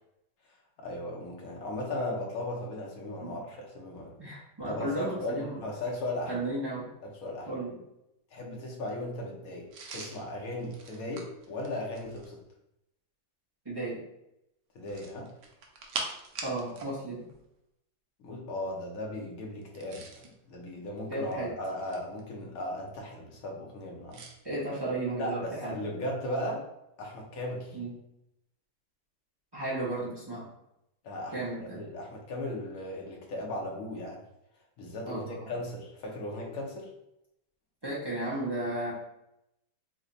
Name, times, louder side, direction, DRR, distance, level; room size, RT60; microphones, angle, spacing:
voice 1, 0.8-4.1 4.7-6.4 7.0-7.5 8.3-12.4 14.7-15.3 18.2-20.1 20.5-24.2 25.2-26.7 27.0-27.8 31.0-31.5 31.7-34.2 34.8-36.9, left 1 dB, 60° left, -1 dB, 1.0 m, -37 dB
voice 2, 4.2-5.6 6.3-6.9 7.5-7.7 13.6-14.0 16.4-17.3 21.1-21.5 24.4-25.7 27.7-27.9 29.5-30.5 31.3-31.8 35.1-35.5 37.8-38.9, right 2 dB, 20° right, -8 dB, 0.7 m, -34 dB
sound 1, 9.7-12.4 14.8-16.9 17.2-17.4 19.6-20.3 21.1-22.2 24.1-24.4, right 4 dB, 85° right, 0.6 m, -42 dB
3.3 x 2.1 x 3.8 m, 0.84 s
omnidirectional pair, 1.9 m